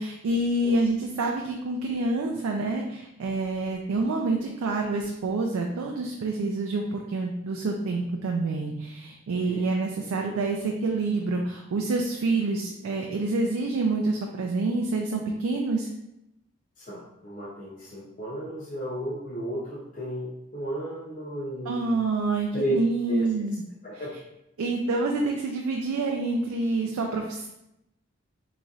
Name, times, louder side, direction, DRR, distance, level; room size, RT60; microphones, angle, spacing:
voice 1, 0.0-15.9 21.7-23.6 23.9-24.0 24.6-27.5, right 2 dB, 90° right, 1 dB, 0.4 m, -27 dB
voice 2, 16.8-21.9 22.5-22.7 23.1-23.3 23.8-24.1, right 1 dB, 40° left, -7 dB, 0.7 m, -34 dB
3.9 x 3.0 x 2.4 m, 0.85 s
head